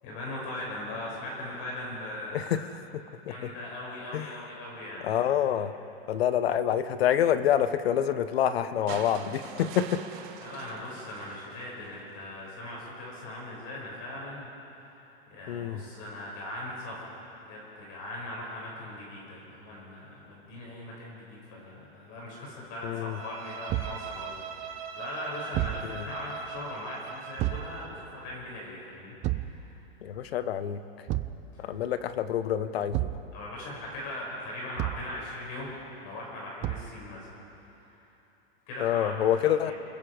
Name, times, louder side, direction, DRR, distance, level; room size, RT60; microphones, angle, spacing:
voice 1, 0.0-2.4 3.3-5.1 10.4-14.5 15.0-17.2 17.5-29.7 31.5-31.7 33.3-37.3 37.7-37.8 38.7-39.1 39.6-39.7, left 1 dB, 45° left, -3 dB, 7.0 m, -40 dB
voice 2, 2.3-2.6 2.9-3.3 4.1-4.3 5.0-5.7 6.1-10.0 15.5-15.8 22.8-23.2 25.9-26.1 30.0-30.8 31.6-33.1 38.8-39.7, left 10 dB, 80° left, 12 dB, 1.3 m, -27 dB
sound 1, 8.9-12.2 13.5-13.6, right 8 dB, 55° right, 2.1 m, -44 dB
Bowed string instrument, 23.1-28.0, right 6 dB, 80° right, 3.9 m, -41 dB
Thump thud, 23.7-24.0 25.5-25.9 27.4-27.7 29.2-29.6 31.1-31.4 32.9-33.3 34.8-35.1 36.6-37.0, right 16 dB, 25° right, 0.5 m, -30 dB
29.0 x 21.5 x 5.1 m, 3.0 s
supercardioid pair, 155°, 30 cm